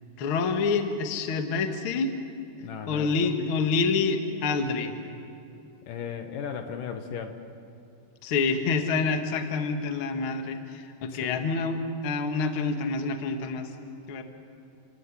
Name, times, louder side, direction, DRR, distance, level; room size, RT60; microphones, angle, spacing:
voice 1, 0.2-2.1 2.9-4.9 8.2-13.7 14.1-14.2, left 4 dB, 50° left, 6 dB, 1.7 m, -27 dB
voice 2, 2.6-3.5 5.9-7.4 11.1-11.4, left 7 dB, 70° left, 7 dB, 2.6 m, -36 dB
29.5 x 17.5 x 9.9 m, 2.7 s
omnidirectional pair, 4.4 m